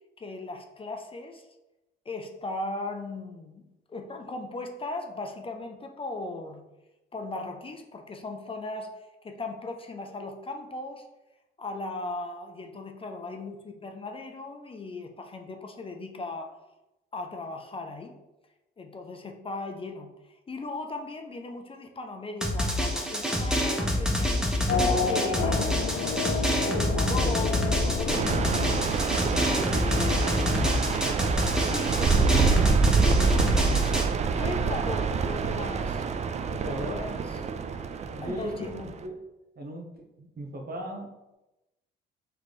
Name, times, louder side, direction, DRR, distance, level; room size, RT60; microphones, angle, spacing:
voice 1, 0.2-1.5 2.1-3.6 3.9-6.6 7.1-11.1 11.6-16.6 17.1-18.2 18.8-26.1 26.7-28.9 29.5-30.9 31.5-34.0 34.4-36.0 36.6-37.2 37.6-37.8 38.2-38.9, left 3 dB, 25° left, 4 dB, 0.5 m, -38 dB
Drum, 22.4-34.0, left 1 dB, 5° right, 0.8 m, -27 dB
Race car auto racing / Accelerating revving vroom, 24.7-29.4, left 4 dB, 75° left, 0.6 m, -29 dB
sound 1, 28.1-39.0, right 5 dB, 35° right, 0.4 m, -26 dB
voice 2, 36.5-37.0 38.0-39.2 39.6-39.9 40.2-41.3, equal, 50° right, 2 dB, 0.9 m, -37 dB
3.3 x 3.1 x 4.1 m, 0.98 s
cardioid pair, 90°, 20 cm